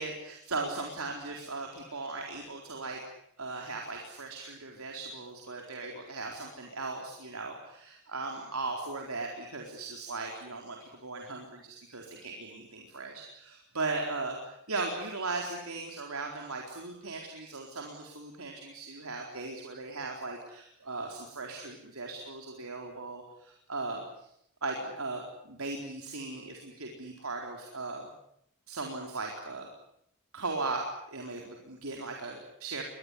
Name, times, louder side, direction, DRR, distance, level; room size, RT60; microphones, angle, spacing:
voice 1, 0.0-3.0 3.4-24.3 24.6-28.1 28.7-29.7 30.3-32.8, right 3 dB, 80° right, 1 dB, 4.2 m, -38 dB
24.0 x 21.0 x 10.0 m, 0.73 s
head